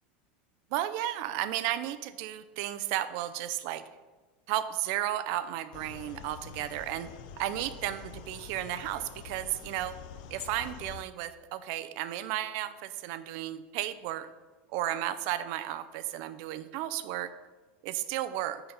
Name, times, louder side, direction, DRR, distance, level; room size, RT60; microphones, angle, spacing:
voice 1, 0.7-3.8 4.5-7.1 7.4-10.0 10.3-14.3 14.7-17.3 17.8-18.6, right 13 dB, 45° right, 12 dB, 0.5 m, -33 dB
sound 1, 5.7-11.0, left 7 dB, 50° left, 0.5 m, -46 dB
9.4 x 4.0 x 5.9 m, 1.3 s
supercardioid pair, 175°, 5 cm